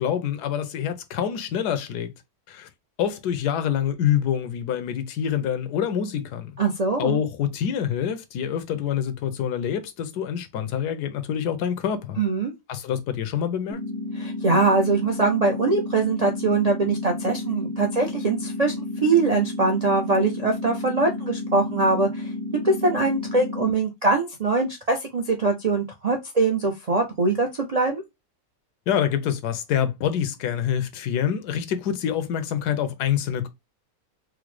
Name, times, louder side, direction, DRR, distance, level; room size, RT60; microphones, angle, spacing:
voice 1, 0.0-2.1 2.5-2.7 3.0-6.6 7.0-12.2 12.7-13.8 28.9-33.5, left 9 dB, 90° left, 1.2 m, -26 dB
voice 2, 6.6-7.2 12.2-12.5 14.2-18.8 19.0-22.3 22.6-28.0, right 3 dB, 80° right, 0.3 m, -22 dB
sound 1, 13.7-23.7, left 2 dB, 55° right, 0.8 m, -32 dB
4.7 x 2.1 x 3.1 m
omnidirectional pair, 1.7 m